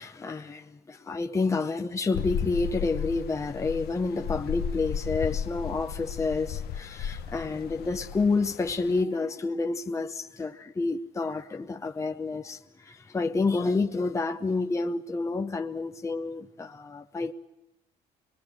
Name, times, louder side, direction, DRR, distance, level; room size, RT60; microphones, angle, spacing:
voice 1, 0.0-17.3, left 3 dB, 15° left, 0.8 m, -29 dB
sound 1, 2.1-9.0, left 8 dB, 70° left, 1.0 m, -34 dB
24.0 x 21.5 x 7.6 m
cardioid pair, 110°, 17 cm